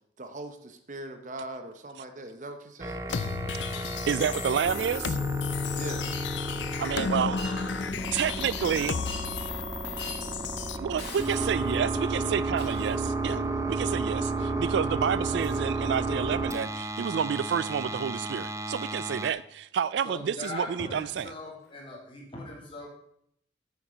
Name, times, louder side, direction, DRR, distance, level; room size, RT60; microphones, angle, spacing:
voice 1, 0.2-3.0 5.7-6.0, right 1 dB, 45° right, 7 dB, 0.9 m, -40 dB
sound 1, 2.8-19.3, right 2 dB, 15° right, 0.5 m, -33 dB
sound 2, 3.1-10.8, left 6 dB, 80° left, 0.5 m, -33 dB
voice 2, 4.1-5.2 6.8-7.4 8.1-9.0 10.8-13.4 13.7-21.3, right 7 dB, 75° right, 18 dB, 0.3 m, -29 dB
Shatter, 6.0-6.2 7.4-7.6 9.0-9.5 10.0-10.3 11.0-11.8 12.6-13.0 15.4-15.6 16.5-16.7 17.5-17.6 20.4-20.5 21.6-21.7, left 3 dB, 60° left, 2.6 m, -42 dB
voice 3, 20.0-22.9, left 2 dB, 30° left, -2 dB, 2.7 m, -40 dB
9.0 x 7.0 x 5.0 m, 0.71 s
head